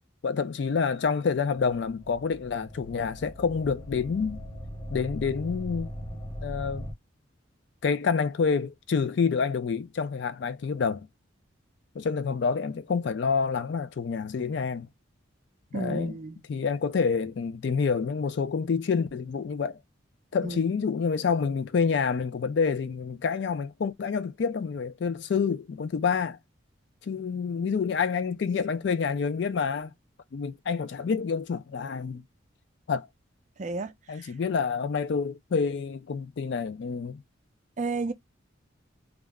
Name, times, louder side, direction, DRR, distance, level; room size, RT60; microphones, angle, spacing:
voice 1, 0.2-4.4 4.9-5.9 6.4-6.9 7.8-11.1 12.0-14.9 15.7-16.2 16.5-19.8 20.3-26.4 27.1-29.9 30.3-32.2 32.9-33.1 34.1-37.2, left 5 dB, 60° left, 0.4 m, -28 dB
sound 1, 1.6-6.9, equal, 15° left, 0.7 m, -40 dB
voice 2, 15.7-16.4 20.4-20.6 33.6-34.3 37.8-38.1, right 3 dB, 40° right, 0.4 m, -32 dB
2.3 x 2.0 x 3.4 m
head